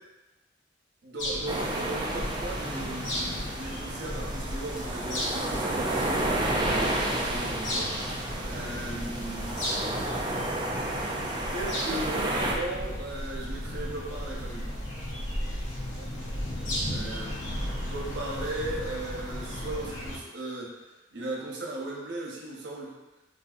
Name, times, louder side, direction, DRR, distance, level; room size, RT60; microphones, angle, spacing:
voice 1, 1.0-9.6 11.5-14.7 16.9-17.3 17.8-22.9, right 2 dB, 75° right, -3 dB, 0.7 m, -37 dB
sound 1, 1.2-20.2, equal, 85° left, 0.7 m, -35 dB
sound 2, 1.5-12.5, right 1 dB, 25° right, 0.3 m, -31 dB
3.7 x 2.6 x 2.4 m, 1.0 s
head